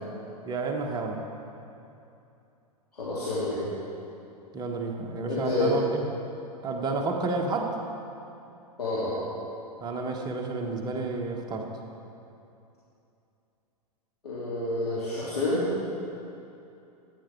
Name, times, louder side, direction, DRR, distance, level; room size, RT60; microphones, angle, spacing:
voice 1, 0.4-1.2 4.5-6.0 6.6-7.7 9.8-11.7, right 3 dB, 20° right, 2 dB, 1.4 m, -30 dB
voice 2, 2.9-3.7 5.3-5.8 8.8-9.2 14.2-15.6, left 2 dB, 75° left, -10 dB, 3.2 m, -28 dB
14.5 x 10.0 x 4.7 m, 2.7 s
figure-of-eight pair, 100°, 20 cm